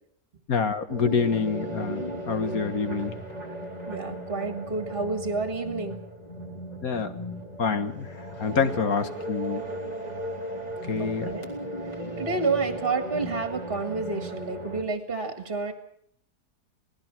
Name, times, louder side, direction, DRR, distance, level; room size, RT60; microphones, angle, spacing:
voice 1, 0.5-3.1 6.8-7.2 7.6-9.6 10.9-11.3, left 5 dB, 60° left, 9 dB, 1.8 m, -27 dB
sound 1, 0.9-14.8, equal, 25° left, 3.6 m, -36 dB
voice 2, 3.9-6.0 11.0-11.5 12.2-15.7, right 4 dB, 35° right, 6 dB, 2.1 m, -29 dB
26.5 x 18.5 x 6.1 m, 0.71 s
omnidirectional pair, 1.8 m